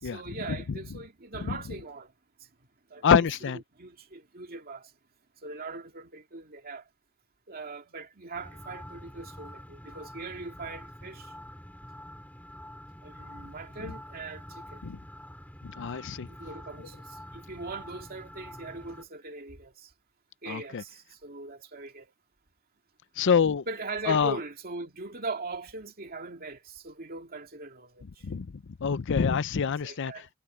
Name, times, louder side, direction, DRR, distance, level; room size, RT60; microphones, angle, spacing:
voice 1, 0.0-2.1 2.4-2.5 2.9-4.9 5.4-6.9 7.5-11.3 13.0-14.8 16.3-19.9 20.4-22.1 23.7-28.3 29.8-30.3, right 3 dB, 45° right, 2.4 m, -40 dB
voice 2, 3.0-3.6 14.8-15.0 15.8-16.3 20.5-20.8 23.2-23.6 24.1-24.3 28.2-28.5 28.8-30.1, left 6 dB, 60° left, 0.5 m, -25 dB
sound 1, 8.3-19.0, equal, 10° left, 2.5 m, -46 dB
head